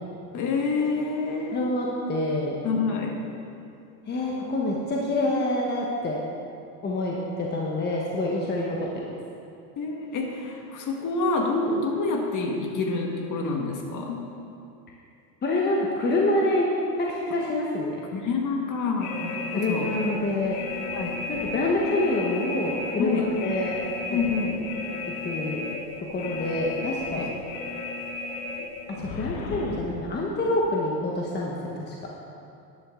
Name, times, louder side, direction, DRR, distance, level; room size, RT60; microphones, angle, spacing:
voice 1, 0.3-1.6 2.6-3.2 9.8-14.2 18.1-19.9 20.9-21.3 23.0-23.3 24.1-24.6 27.1-27.3, left 3 dB, 40° left, 1 dB, 1.7 m, -27 dB
voice 2, 1.5-2.5 4.1-6.2 6.8-9.1 15.4-16.6 17.0-18.0 19.5-20.6 21.3-23.7 25.2-25.6 26.1-27.3 29.0-31.9, left 2 dB, 20° left, -2 dB, 1.2 m, -26 dB
sound 1, 19.0-29.8, left 3 dB, 65° left, 1.5 m, -34 dB
12.0 x 10.5 x 3.8 m, 2.6 s
supercardioid pair, 120°, 49 cm